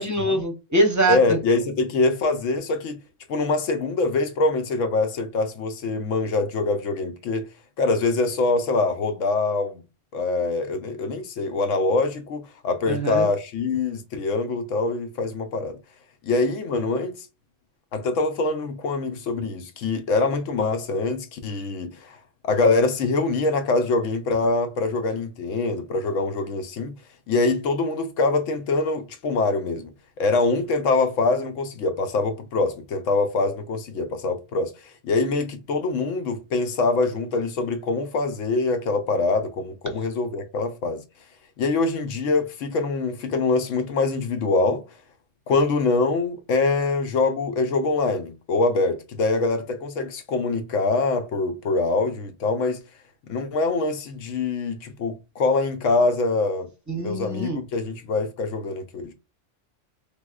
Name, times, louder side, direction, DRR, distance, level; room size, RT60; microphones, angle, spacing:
voice 1, 0.0-1.4 12.9-13.3 56.9-57.6, right 2 dB, 20° right, 0.6 m, -23 dB
voice 2, 1.1-3.0 3.3-7.5 7.8-9.8 10.1-15.8 16.2-17.3 17.9-22.2 22.4-26.9 27.3-41.0 41.6-44.8 45.5-52.8 53.3-56.7 57.0-59.1, left 3 dB, 90° left, 1.1 m, -24 dB
3.5 x 2.9 x 2.4 m
omnidirectional pair, 1.3 m